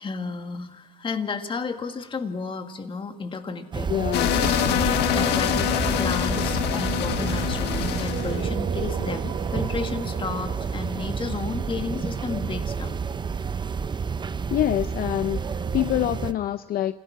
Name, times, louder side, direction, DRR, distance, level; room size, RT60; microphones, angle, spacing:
voice 1, 0.0-3.9 4.7-5.7 6.0-13.0, left 4 dB, 30° left, 7 dB, 1.9 m, -32 dB
sound 1, 3.7-16.3, right 6 dB, 25° right, 0.7 m, -30 dB
voice 2, 3.9-4.4 14.5-16.9, left 12 dB, 60° left, 12 dB, 0.6 m, -26 dB
sound 2, 4.1-10.9, left 10 dB, 85° left, 1.5 m, -25 dB
sound 3, 7.0-15.0, right 9 dB, 55° right, 1.3 m, -39 dB
28.5 x 16.5 x 5.9 m, 1.2 s
cardioid pair, 110°, 17 cm